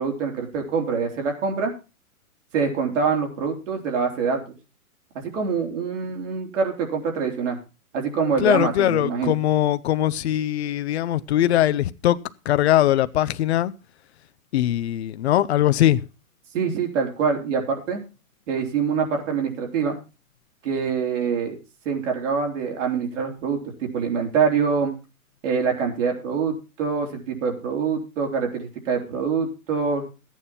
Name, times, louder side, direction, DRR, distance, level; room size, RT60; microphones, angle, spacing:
voice 1, 0.0-1.7 2.5-4.4 5.1-7.6 7.9-9.4 16.5-18.0 18.5-20.0 20.6-21.6 21.9-24.9 25.4-30.2, right 5 dB, 55° right, 3.7 m, -25 dB
voice 2, 8.4-12.2 12.5-13.7 14.5-16.0, left 13 dB, 45° left, 0.8 m, -21 dB
14.0 x 9.2 x 4.2 m
hypercardioid pair, 145°, 44 cm